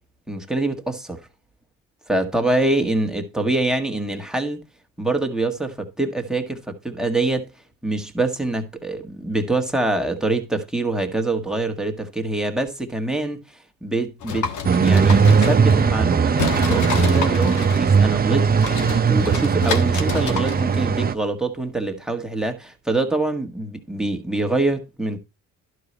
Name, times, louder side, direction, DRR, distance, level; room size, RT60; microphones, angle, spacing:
voice 1, 0.3-1.2 2.1-4.6 5.0-7.5 7.8-14.5 14.8-18.5 19.1-25.2, right 2 dB, ahead, 1.6 m, -25 dB
sound 1, 14.2-16.1 16.4-20.9, left 7 dB, 75° left, 1.4 m, -29 dB
sound 2, 14.6-21.1, right 6 dB, 30° right, 0.7 m, -18 dB
11.5 x 4.8 x 4.2 m
cardioid pair, 90°, 30 cm